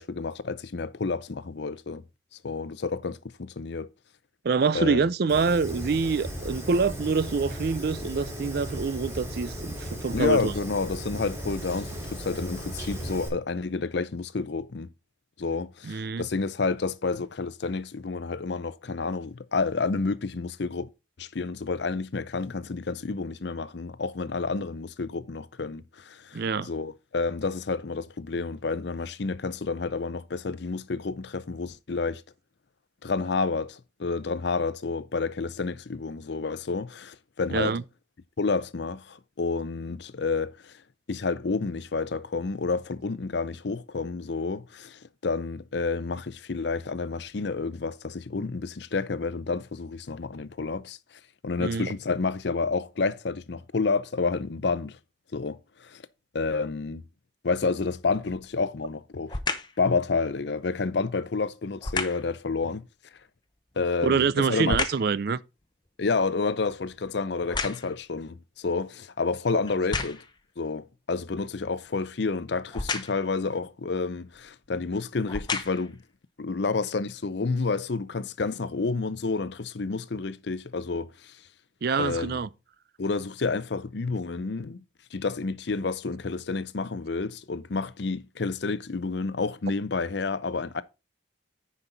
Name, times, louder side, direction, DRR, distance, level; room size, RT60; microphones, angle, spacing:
voice 1, 0.0-2.0 2.4-3.9 4.7-5.0 10.1-14.9 15.4-20.9 21.2-32.2 33.0-37.8 38.4-40.8 41.1-51.0 51.4-55.0 55.3-56.0 56.3-57.0 57.4-59.3 59.8-62.8 63.8-64.8 66.0-70.2 70.6-76.0 76.4-81.3 82.0-82.4 83.0-84.8 85.1-90.8, left 4 dB, 60° left, 0.6 m, -30 dB
voice 2, 4.4-10.5 15.8-16.3 26.3-26.7 37.5-37.8 51.6-51.9 64.0-65.4 81.8-82.5, right 5 dB, 55° right, 0.4 m, -26 dB
Fire, 5.3-13.3, equal, 15° right, 2.5 m, -36 dB
sound 1, 58.2-58.5 59.3-59.8 61.8-62.3 63.7-65.2 65.6-68.1 68.8-68.9 69.7-70.4 72.7-73.3 74.3-74.5 75.1-76.0 76.6-76.7, left 4 dB, 25° left, 0.8 m, -32 dB
9.8 x 5.3 x 4.0 m
head